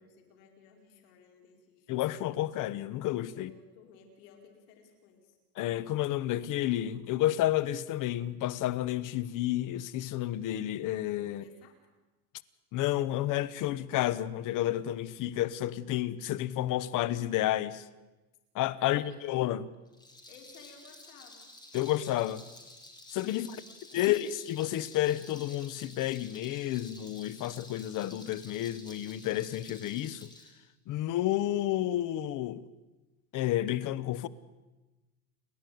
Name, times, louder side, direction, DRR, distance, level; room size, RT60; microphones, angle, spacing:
voice 1, 0.0-1.9 3.3-5.4 11.3-11.7 18.8-19.2 20.3-21.5 23.3-24.1, left 6 dB, 85° left, 5.1 m, -57 dB
voice 2, 1.9-3.5 5.6-11.4 12.7-17.8 18.5-19.7 21.7-22.4 23.1-23.6 23.9-30.3 30.9-32.6 33.3-34.3, left 13 dB, 45° left, 1.0 m, -31 dB
Rattle, 19.9-30.5, left 1 dB, 10° left, 3.5 m, -51 dB
30.0 x 11.0 x 9.3 m
supercardioid pair, 140°, 46 cm